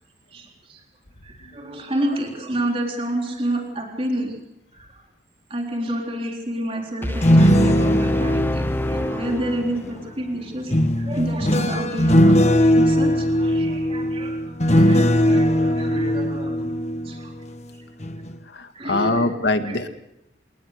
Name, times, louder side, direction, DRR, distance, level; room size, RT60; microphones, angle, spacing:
voice 1, 0.3-0.8 1.2-4.4 4.7-5.0 5.5-16.6 17.0-17.3 18.7-19.3 19.6-19.8, right 1 dB, 30° right, 1 dB, 3.9 m, -29 dB
sound 1, 7.0-9.9 10.7-17.6 18.0-18.3, equal, 35° left, 1.5 m, -19 dB
sound 2, 7.0-10.0, left 1 dB, 10° left, 0.8 m, -27 dB
voice 2, 18.5-19.9, left 2 dB, 70° left, 7 dB, 1.9 m, -23 dB
28.5 x 20.0 x 6.6 m, 0.84 s
head